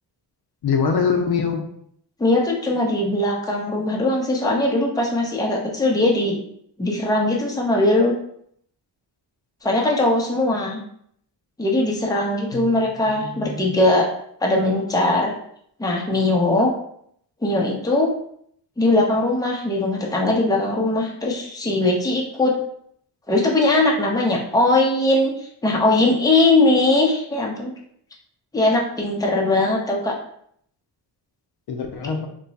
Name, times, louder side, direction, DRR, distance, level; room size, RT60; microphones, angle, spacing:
voice 1, 0.6-1.7 12.5-12.7 13.2-13.8 31.7-32.3, left 5 dB, 60° left, 3 dB, 0.6 m, -23 dB
voice 2, 2.2-6.4 6.8-8.1 9.6-10.8 11.6-14.1 14.4-15.3 15.8-16.7 17.4-18.1 18.8-22.5 23.3-25.3 25.6-27.7 28.5-30.1, left 2 dB, 10° left, -2 dB, 0.7 m, -20 dB
3.0 x 2.2 x 4.0 m, 0.67 s
cardioid pair, 105°, 44 cm